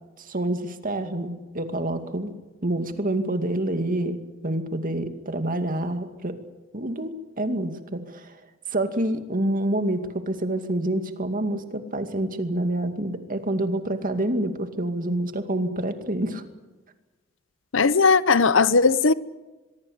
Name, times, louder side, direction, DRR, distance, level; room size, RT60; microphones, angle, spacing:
voice 1, 0.2-2.3 2.6-4.2 4.4-6.3 6.7-7.1 7.4-8.3 8.7-16.4, right 1 dB, 45° right, 2.3 m, -27 dB
voice 2, 17.7-19.1, left 4 dB, 65° left, 0.9 m, -18 dB
24.0 x 22.5 x 8.1 m
head